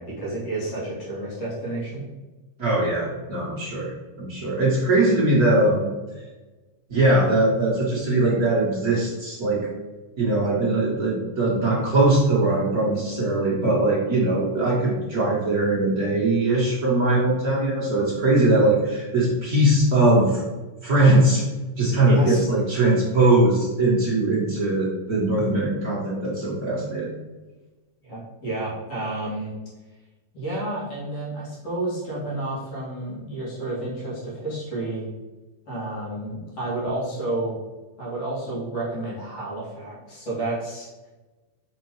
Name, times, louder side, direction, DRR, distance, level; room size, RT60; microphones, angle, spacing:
voice 1, 0.0-2.0 22.0-22.4 28.0-29.5 30.3-35.1 35.7-37.6 38.0-41.1, right 2 dB, 50° left, -7 dB, 3.2 m, -30 dB
voice 2, 2.6-5.9 6.9-9.7 10.2-20.4 20.8-21.4 21.8-27.1, right 2 dB, 55° right, -6 dB, 1.0 m, -21 dB
6.7 x 4.4 x 4.8 m, 1.2 s
omnidirectional pair, 4.0 m